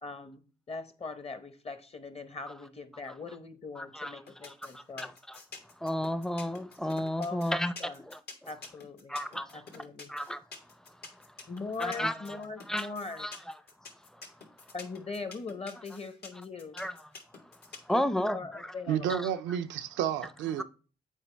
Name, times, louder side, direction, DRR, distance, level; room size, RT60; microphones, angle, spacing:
voice 1, 0.0-5.1 7.2-7.4 7.8-8.0 8.5-9.2 9.5-10.1 11.5-13.3 14.7-16.8 17.9-19.2, left 4 dB, 35° left, 0.9 m, -41 dB
voice 2, 3.8-5.4 5.8-8.2 9.1-9.6 10.1-10.4 10.9-11.3 11.8-12.4 12.7-12.9 13.2-13.3 14.1-14.2 16.7-16.9 17.4-17.5 17.8-18.7 19.1-19.3 20.6-20.7, equal, 5° left, 0.5 m, -33 dB
sound 1, 4.3-17.9, left 4 dB, 65° left, 1.4 m, -47 dB
voice 3, 18.9-20.6, right 10 dB, 85° right, 0.4 m, -31 dB
7.2 x 4.4 x 3.3 m
supercardioid pair, 45°, 18 cm